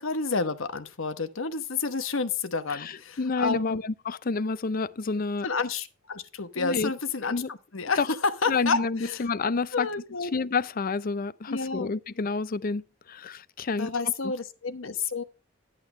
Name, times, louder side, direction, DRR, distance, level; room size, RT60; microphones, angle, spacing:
voice 1, 0.0-3.8 5.4-9.2 9.7-10.3 11.5-11.9 13.8-15.2, left 4 dB, 85° left, 1.1 m, -30 dB
voice 2, 2.7-5.5 6.6-6.9 7.3-7.5 8.0-8.1 8.5-9.9 10.2-13.9, left 4 dB, 45° left, 0.5 m, -29 dB
12.5 x 8.6 x 3.3 m
head